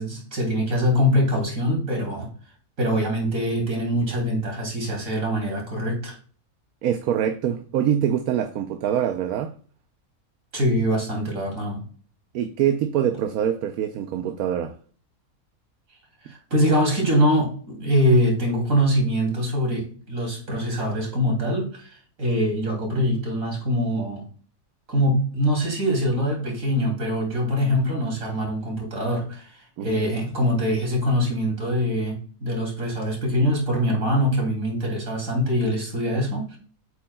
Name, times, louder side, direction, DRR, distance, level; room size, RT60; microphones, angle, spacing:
voice 1, 0.0-2.3 2.8-6.1 10.5-11.8 16.2-21.9 22.2-24.2 24.9-36.6, equal, 65° right, 3.2 m, -23 dB
voice 2, 6.8-9.5 12.3-14.8 29.8-30.0, right 9 dB, 80° right, 1.1 m, -24 dB
8.3 x 7.0 x 2.2 m
omnidirectional pair, 1.5 m